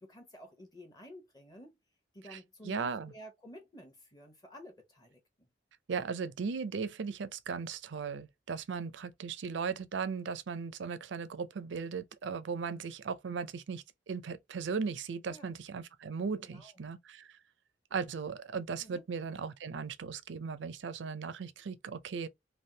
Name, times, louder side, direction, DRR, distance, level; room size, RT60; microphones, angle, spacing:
voice 1, 0.0-1.7 2.1-5.5 15.3-15.6 16.4-16.9 18.8-19.0, equal, 20° left, 0.7 m, -52 dB
voice 2, 2.6-3.1 5.9-17.4 17.9-22.3, right 5 dB, 80° right, 0.5 m, -37 dB
3.4 x 2.5 x 2.7 m
head